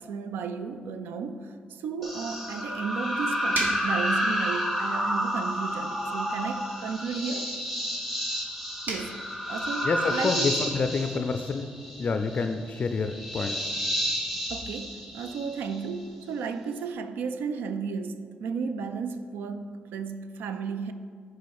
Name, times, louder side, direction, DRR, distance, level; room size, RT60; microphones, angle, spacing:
voice 1, 0.0-7.5 8.9-9.2 9.5-10.5 14.5-20.9, right 5 dB, 85° right, 9 dB, 0.3 m, -34 dB
sound 1, 2.0-15.9, equal, 10° right, 1.3 m, -30 dB
sound 2, 2.0-13.1, right 2 dB, 55° right, 1.5 m, -42 dB
voice 2, 9.8-11.7 12.0-13.7, left 4 dB, 45° left, 7 dB, 0.4 m, -28 dB
6.8 x 4.6 x 4.7 m, 2.1 s
cardioid pair, 70°, 3 cm